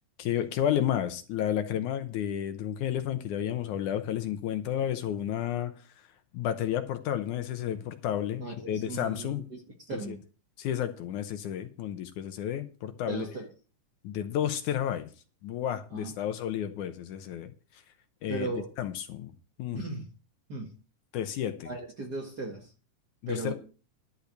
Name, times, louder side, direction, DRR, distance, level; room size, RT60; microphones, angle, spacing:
voice 1, 0.2-5.7 6.3-9.4 10.1-10.2 10.6-13.3 14.0-15.1 15.4-17.5 18.2-18.5 18.8-19.3 19.6-19.8 21.1-21.7 23.2-23.5, left 10 dB, 75° left, 2.2 m, -31 dB
voice 2, 8.4-10.2 13.1-13.5 15.9-16.1 18.3-18.7 19.7-20.1 20.5-20.7 21.6-22.7 23.3-23.5, right 2 dB, 40° right, 1.7 m, -37 dB
12.0 x 5.5 x 8.1 m
omnidirectional pair, 3.8 m